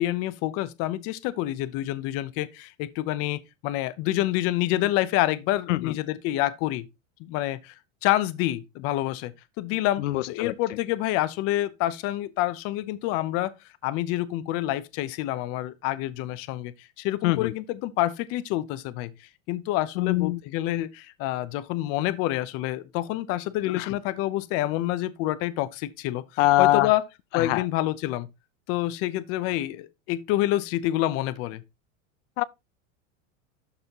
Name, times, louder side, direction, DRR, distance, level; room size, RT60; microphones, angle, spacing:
voice 1, 0.0-6.9 7.2-7.7 8.0-9.3 9.6-13.5 13.8-16.7 17.0-19.1 19.5-26.2 26.6-27.0 27.3-28.3 28.7-31.6, left 15 dB, 35° left, 0.7 m, -27 dB
voice 2, 10.0-10.5 17.2-17.5 20.0-20.4 23.7-23.9 26.4-26.9 27.3-27.6 32.4-32.5, left 17 dB, 70° left, 0.5 m, -23 dB
12.5 x 4.1 x 3.0 m
supercardioid pair, 155°, 39 cm